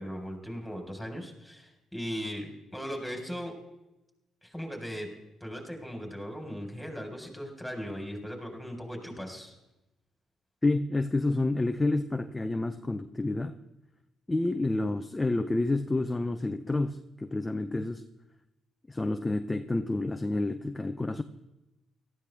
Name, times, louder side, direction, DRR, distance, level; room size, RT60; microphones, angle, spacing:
voice 1, 0.0-3.5 4.4-5.1 5.4-9.5, equal, ahead, 2 dB, 4.2 m, -38 dB
voice 2, 10.6-13.6 14.3-18.0 18.9-21.2, left 2 dB, 15° left, 8 dB, 0.6 m, -29 dB
18.0 x 13.5 x 3.4 m, 0.96 s
cardioid pair, 90°, 0 cm